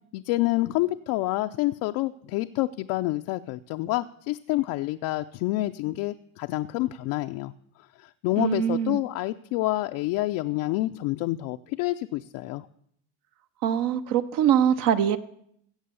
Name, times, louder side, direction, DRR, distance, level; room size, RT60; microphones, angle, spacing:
voice 1, 0.1-7.5 8.0-12.7, left 18 dB, 55° left, 7 dB, 0.5 m, -28 dB
voice 2, 8.4-9.0 13.6-15.2, right 9 dB, 55° right, 11 dB, 0.9 m, -23 dB
15.5 x 7.5 x 6.9 m, 0.69 s
supercardioid pair, 120°, 40 cm